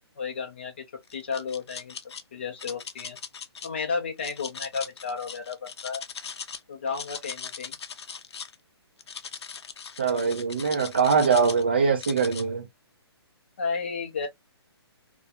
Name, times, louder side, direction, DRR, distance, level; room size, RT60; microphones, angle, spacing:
voice 1, 0.2-0.8 1.1-2.0 2.3-3.2 3.6-6.0 6.7-7.8 13.6-14.3, left 5 dB, 25° left, 0.5 m, -32 dB
sound 1, 1.1-2.2 2.6-3.7 4.2-6.6 6.9-8.5 9.0-11.6 12.0-12.4, left 6 dB, 75° left, 0.5 m, -39 dB
voice 2, 10.0-12.7, right 5 dB, 25° right, 0.4 m, -23 dB
2.4 x 2.2 x 2.7 m
hypercardioid pair, 180°, 14 cm